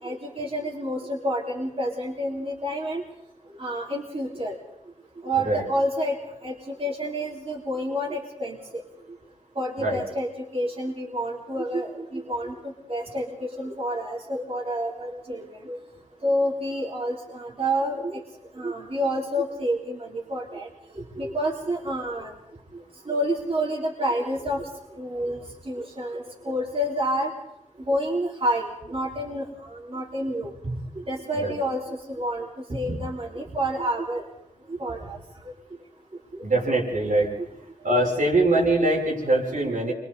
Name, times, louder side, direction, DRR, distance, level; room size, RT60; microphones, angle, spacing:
voice 1, 0.0-3.0 3.6-4.6 5.2-6.1 6.4-8.8 9.5-15.8 16.2-18.2 18.6-20.7 20.9-22.3 23.1-24.6 25.0-25.4 25.7-27.3 27.9-29.4 29.7-30.7 31.1-34.2 34.7-35.2 38.5-38.6, equal, 45° right, -3 dB, 3.3 m, -29 dB
voice 2, 36.4-37.3 37.8-39.9, right 2 dB, 85° right, -4 dB, 6.3 m, -22 dB
28.0 x 23.5 x 4.1 m, 0.82 s
wide cardioid pair, 80°, 13 cm